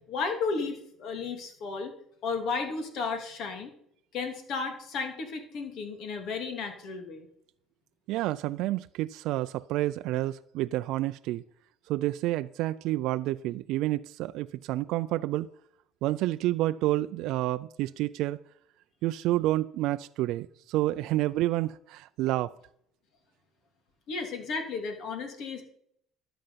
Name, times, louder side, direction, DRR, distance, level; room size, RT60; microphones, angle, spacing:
voice 1, 0.1-1.9 2.2-3.7 4.1-7.3 24.1-25.6, left 4 dB, 60° left, 3.0 m, -33 dB
voice 2, 8.1-11.4 11.9-15.5 16.0-18.4 19.0-22.5, right 16 dB, 70° right, 0.4 m, -29 dB
13.0 x 9.2 x 5.8 m
cardioid pair, 125°, 0 cm